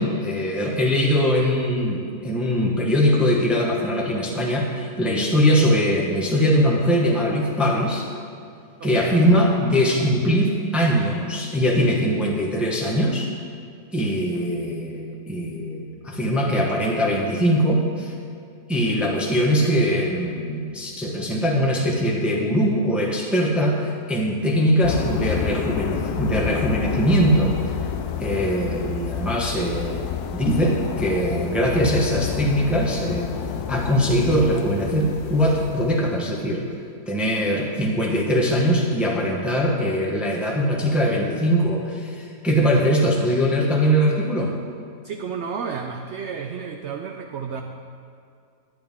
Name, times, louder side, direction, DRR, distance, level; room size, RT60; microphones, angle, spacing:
voice 1, 0.0-8.1 8.8-13.3 13.9-18.1 18.7-27.6 28.2-33.3 33.7-36.6 37.1-44.5, equal, ahead, -2 dB, 0.9 m, -21 dB
voice 2, 8.8-9.1 45.0-47.6, right 6 dB, 65° right, 4 dB, 0.7 m, -31 dB
sound 1, 24.8-36.2, left 8 dB, 90° left, 1.1 m, -29 dB
10.5 x 10.0 x 3.6 m, 2.3 s
omnidirectional pair, 1.6 m